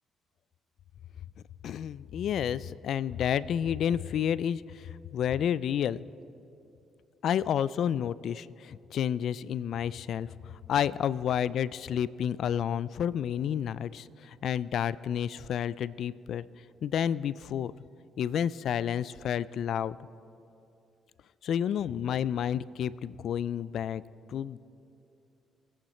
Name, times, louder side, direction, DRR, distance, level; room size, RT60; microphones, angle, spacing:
voice 1, 1.6-6.0 7.2-16.5 16.8-17.7 18.2-20.0 21.4-24.0 24.3-24.6, left 9 dB, 70° left, 19 dB, 0.3 m, -30 dB
22.0 x 8.9 x 4.3 m, 2.7 s
cardioid pair, 90°, 0 cm